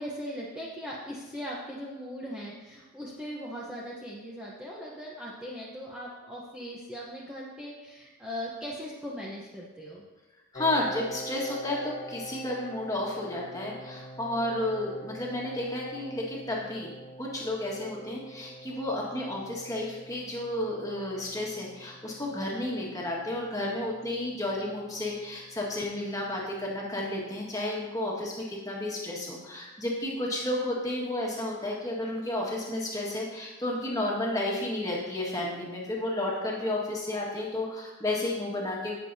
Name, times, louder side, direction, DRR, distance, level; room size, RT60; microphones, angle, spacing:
voice 1, 0.0-10.0, equal, 5° right, -6 dB, 0.9 m, -39 dB
Piano, 10.5-25.9, right 1 dB, 35° left, 1.1 m, -45 dB
voice 2, 10.5-16.9 17.2-38.9, left 1 dB, 15° left, -3 dB, 1.7 m, -32 dB
17.0 x 6.7 x 2.8 m, 1.2 s
head